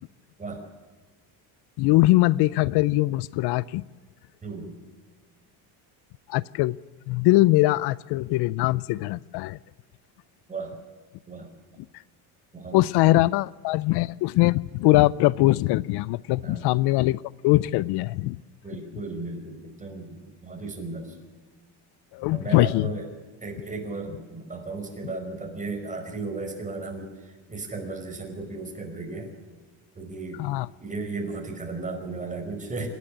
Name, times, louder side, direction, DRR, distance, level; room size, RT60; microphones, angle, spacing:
voice 1, 1.8-3.8 6.3-6.8 7.1-9.6 12.7-18.4 22.1-22.9 30.4-30.7, left 18 dB, 70° left, 21 dB, 0.5 m, -22 dB
voice 2, 4.4-4.8 10.5-10.7 11.3-11.5 12.5-13.2 16.4-16.7 18.6-21.2 22.3-23.1 23.4-29.3 30.0-30.4 30.8-32.9, right 3 dB, 20° right, 3 dB, 5.2 m, -35 dB
26.5 x 10.5 x 9.9 m, 1.4 s
cardioid pair, 120°, 41 cm